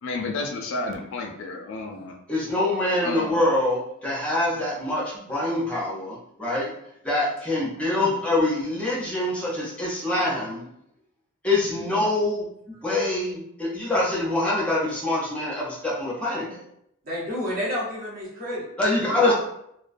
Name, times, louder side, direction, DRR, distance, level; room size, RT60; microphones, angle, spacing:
voice 1, 0.0-2.2 3.0-3.4 7.8-8.1, left 3 dB, 60° left, 4 dB, 0.3 m, -32 dB
voice 2, 2.3-6.7 7.0-10.7 11.4-12.5 12.8-16.6 18.8-19.3, left 2 dB, 5° left, -6 dB, 0.5 m, -25 dB
voice 3, 17.0-18.7 19.0-19.3, equal, 40° right, -6 dB, 0.9 m, -30 dB
2.3 x 2.1 x 2.5 m, 0.75 s
head